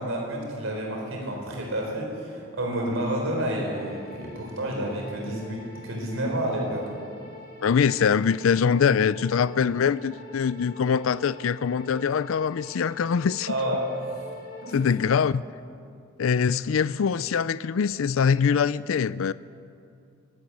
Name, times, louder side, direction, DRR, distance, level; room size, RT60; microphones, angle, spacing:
voice 1, 0.0-6.9 13.5-13.9 14.6-14.9, right 1 dB, 70° right, 4.3 m, -30 dB
sound 1, 3.7-14.9, left 1 dB, 50° left, 6.8 m, -45 dB
voice 2, 7.6-13.5 14.7-15.4 16.2-19.3, left 6 dB, 75° left, 0.4 m, -23 dB
23.5 x 14.0 x 8.5 m
head